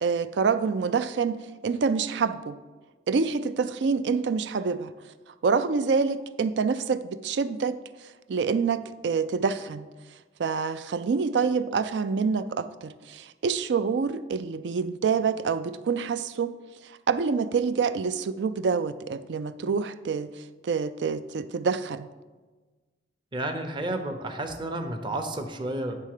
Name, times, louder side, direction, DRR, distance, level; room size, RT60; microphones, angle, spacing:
voice 1, 0.0-2.6 3.1-4.9 5.4-7.8 8.3-9.9 10.4-16.5 16.8-22.1, right 5 dB, 80° right, 13 dB, 0.4 m, -27 dB
voice 2, 23.3-26.0, right 1 dB, 30° right, 4 dB, 0.7 m, -31 dB
9.5 x 3.6 x 6.6 m, 1.3 s
head